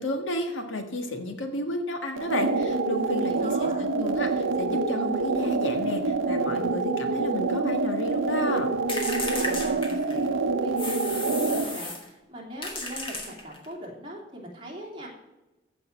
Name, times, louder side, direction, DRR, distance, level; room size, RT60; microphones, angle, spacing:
voice 1, 0.0-8.7, left 1 dB, 70° left, 5 dB, 1.6 m, -32 dB
sound 1, 2.2-11.8, right 3 dB, 80° right, 0.8 m, -26 dB
voice 2, 3.3-3.8 9.3-15.1, equal, 25° right, -2 dB, 2.9 m, -41 dB
sound 2, 8.9-10.3 10.8-12.1 12.6-13.7, left 2 dB, 25° left, 1.8 m, -34 dB
14.5 x 5.3 x 7.5 m, 1.1 s
head